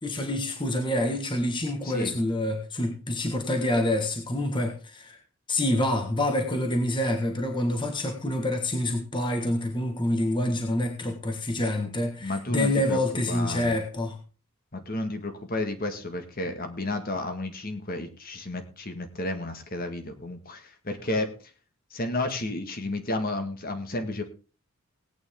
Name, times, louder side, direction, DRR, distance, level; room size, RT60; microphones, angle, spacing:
voice 1, 0.0-5.2 5.5-14.2, left 1 dB, 20° left, 3 dB, 1.6 m, -27 dB
voice 2, 1.8-2.2 12.2-13.0 13.3-13.8 14.7-21.3 21.9-24.2, left 2 dB, 40° left, 6 dB, 1.9 m, -32 dB
18.0 x 9.4 x 3.7 m, 0.34 s
head